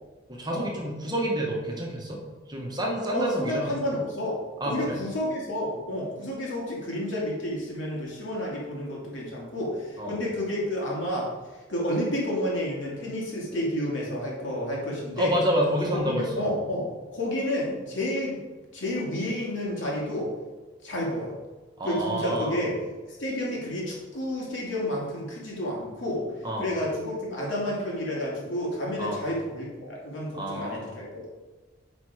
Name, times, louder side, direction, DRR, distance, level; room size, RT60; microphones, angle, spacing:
voice 1, 0.3-2.2 2.5-3.8 4.6-5.0 10.0-10.2 15.2-16.5 21.8-22.6 26.4-26.7 29.0-29.2 30.3-30.9, equal, 20° right, -1 dB, 1.3 m, -28 dB
voice 2, 3.1-11.3 11.7-15.4 15.9-18.4 18.7-20.3 20.8-21.3 21.8-22.7 23.0-26.3 26.6-31.3, left 1 dB, 85° left, -4 dB, 2.4 m, -30 dB
8.4 x 4.4 x 4.9 m, 1.2 s
head